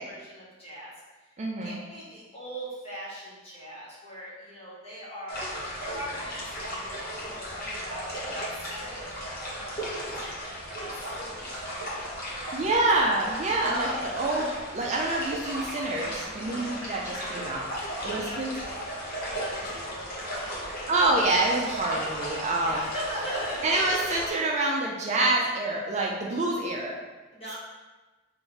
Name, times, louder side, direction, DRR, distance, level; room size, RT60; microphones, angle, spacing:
voice 1, 0.0-0.9 1.6-5.4 5.8-9.1 9.5-12.9 13.7-14.2 17.9-20.8 22.6-23.8 27.3-27.5, equal, 30° left, -8 dB, 1.5 m, -40 dB
voice 2, 1.4-1.8 12.5-18.5 20.9-22.8 23.6-27.0, right 2 dB, 35° right, -1 dB, 0.4 m, -27 dB
sound 1, 5.3-24.3, equal, 45° left, 1.0 m, -36 dB
3.7 x 2.6 x 4.6 m, 1.2 s
head